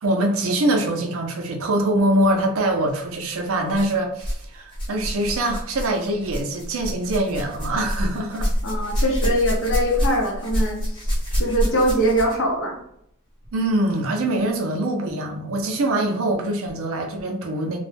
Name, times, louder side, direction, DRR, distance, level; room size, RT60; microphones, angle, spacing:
voice 1, 0.0-8.5 13.5-17.8, right 1 dB, 70° right, 3 dB, 0.5 m, -23 dB
sound 1, 2.8-2.9 3.7-4.4 4.7-12.5 13.4-13.5 14.3-14.4, equal, 25° left, 0.9 m, -27 dB
voice 2, 8.6-11.1 11.4-12.8, equal, 60° left, -1 dB, 0.7 m, -22 dB
2.2 x 2.0 x 3.3 m, 0.72 s
head